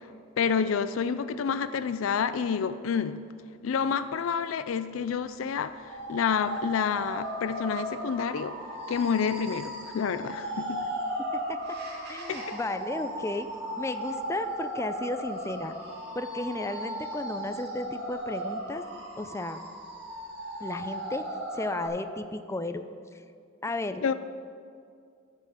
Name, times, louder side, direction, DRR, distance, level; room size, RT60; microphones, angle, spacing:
voice 1, 0.4-3.2 3.6-8.6 8.9-10.8 12.3-12.6 24.0-24.1, left 6 dB, 85° left, 13 dB, 0.4 m, -29 dB
sound 1, 5.8-21.9, right 1 dB, 55° right, 2.3 m, -36 dB
voice 2, 12.1-13.5 13.8-15.7 16.1-18.8 19.2-19.6 20.6-21.3 21.5-22.9 23.6-24.0, left 2 dB, 15° left, 9 dB, 0.4 m, -34 dB
14.0 x 5.6 x 6.6 m, 2.3 s
head